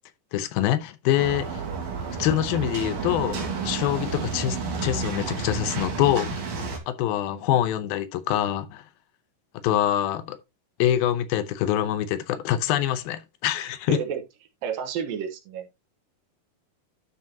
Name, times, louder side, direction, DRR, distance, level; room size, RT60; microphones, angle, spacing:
voice 1, 0.3-1.6 2.2-6.4 6.9-8.8 9.6-10.4 10.8-14.0, left 12 dB, 85° left, 2.6 m, -25 dB
sound 1, 1.2-6.8, right 5 dB, 50° right, 2.8 m, -31 dB
voice 2, 13.9-14.2 14.6-15.7, right 7 dB, 75° right, 2.8 m, -30 dB
11.5 x 6.0 x 2.8 m
omnidirectional pair, 4.2 m